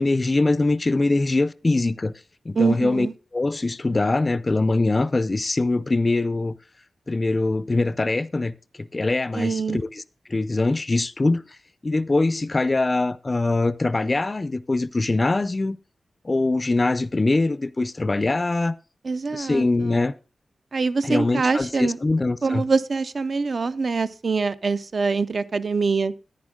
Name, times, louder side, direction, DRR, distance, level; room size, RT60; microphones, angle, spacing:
voice 1, 0.0-2.1 2.5-3.1 3.3-6.5 7.1-10.0 10.3-11.4 11.8-15.8 16.2-18.7 19.3-20.1 21.0-22.6, left 2 dB, 30° left, 0.4 m, -23 dB
voice 2, 2.6-3.1 9.3-9.8 19.0-19.6 20.7-22.0 22.4-26.1, right 4 dB, 55° right, 0.6 m, -24 dB
10.5 x 9.6 x 3.6 m
wide cardioid pair, 105°, 0 cm